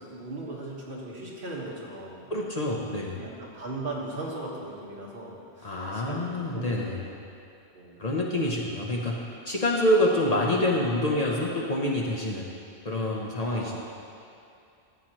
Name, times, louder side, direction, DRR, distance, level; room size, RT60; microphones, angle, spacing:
voice 1, 0.0-2.3 3.1-7.2 7.7-8.0 13.5-13.8, right 2 dB, 55° right, -4 dB, 1.6 m, -38 dB
voice 2, 2.3-3.2 5.6-7.1 8.0-12.5 12.8-13.8, left 1 dB, 40° left, -2 dB, 0.9 m, -27 dB
13.5 x 8.1 x 3.0 m, 2.5 s
omnidirectional pair, 1.1 m